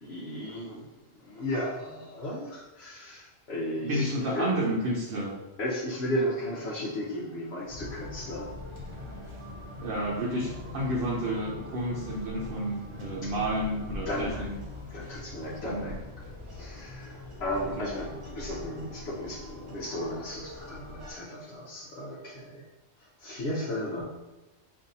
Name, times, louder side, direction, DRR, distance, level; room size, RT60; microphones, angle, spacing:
voice 1, 0.0-0.9 1.1-4.5 5.6-8.5 14.1-14.5 14.9-16.0 16.5-22.7 23.0-24.2, left 1 dB, 65° left, -6 dB, 1.0 m, -35 dB
voice 2, 3.8-5.4 9.8-14.6 15.6-15.9 17.8-17.9, right 1 dB, 65° right, -3 dB, 0.8 m, -31 dB
sound 1, 7.7-21.1, left 2 dB, 30° right, 0.7 m, -42 dB
5.3 x 2.6 x 2.6 m, 1.0 s
omnidirectional pair, 1.2 m